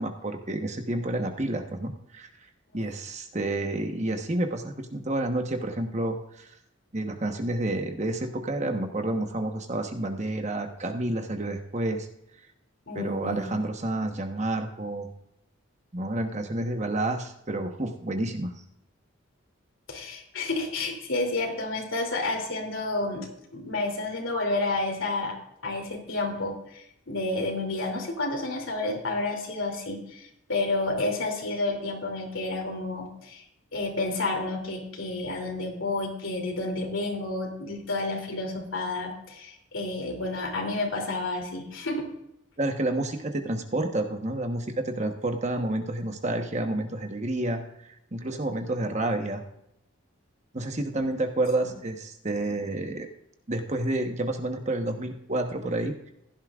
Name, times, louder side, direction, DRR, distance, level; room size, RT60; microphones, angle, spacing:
voice 1, 0.0-2.3 2.7-6.5 6.9-12.1 12.9-15.1 15.9-18.5 42.6-47.6 48.1-49.4 50.5-53.1 53.5-56.1, right 1 dB, 35° right, 5 dB, 1.1 m, -29 dB
voice 2, 12.9-13.5 19.9-25.3 25.6-33.4 33.7-42.1 51.6-51.7, left 2 dB, 70° left, 2 dB, 2.9 m, -30 dB
16.0 x 11.5 x 2.4 m, 0.80 s
head